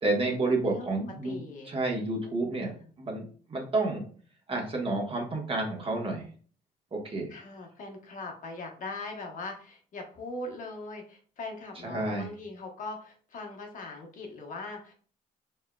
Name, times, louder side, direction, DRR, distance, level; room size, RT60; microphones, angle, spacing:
voice 1, 0.0-1.4 1.6-2.7 3.0-4.0 4.5-6.3 6.9-7.3 11.8-12.3, right 2 dB, 30° right, 0 dB, 1.3 m, -30 dB
voice 2, 1.2-1.7 2.7-2.9 7.3-14.9, left 2 dB, 50° left, 2 dB, 1.1 m, -40 dB
4.4 x 3.6 x 2.3 m, 0.43 s
cardioid pair, 110°, 17 cm